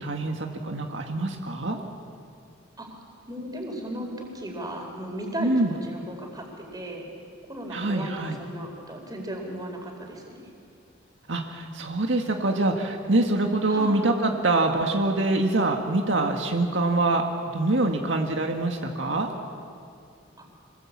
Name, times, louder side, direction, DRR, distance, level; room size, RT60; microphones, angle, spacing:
voice 1, 0.0-1.8 5.4-5.7 7.7-8.4 11.3-17.2 17.5-19.3, right 2 dB, 75° right, 3 dB, 1.8 m, -25 dB
voice 2, 2.8-7.1 7.5-8.1 8.4-10.5 13.7-14.0 20.4-20.5, right 1 dB, 20° right, 2 dB, 4.5 m, -36 dB
26.0 x 20.5 x 8.7 m, 2.4 s
head